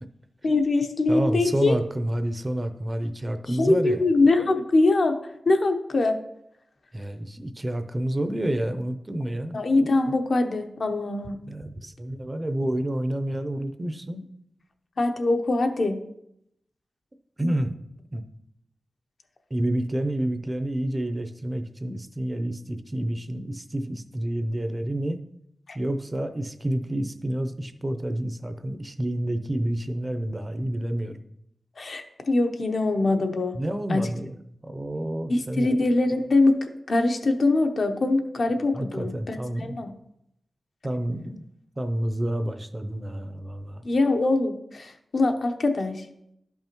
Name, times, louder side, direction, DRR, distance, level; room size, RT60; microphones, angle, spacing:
voice 1, 0.4-1.8 3.5-5.1 5.4-6.2 9.5-11.3 15.0-16.0 25.7-25.8 31.8-33.5 33.9-34.0 35.3-39.9 43.8-46.0, left 2 dB, 60° left, 5 dB, 0.8 m, -23 dB
voice 2, 1.1-4.0 6.9-9.6 11.4-14.2 17.4-17.7 18.1-18.2 19.5-25.2 25.7-31.2 33.5-34.3 34.6-35.7 38.7-39.8 40.8-41.5 41.8-43.9, right 1 dB, 25° right, 8 dB, 0.6 m, -29 dB
11.5 x 5.5 x 3.0 m, 0.77 s
wide cardioid pair, 85°, 0 cm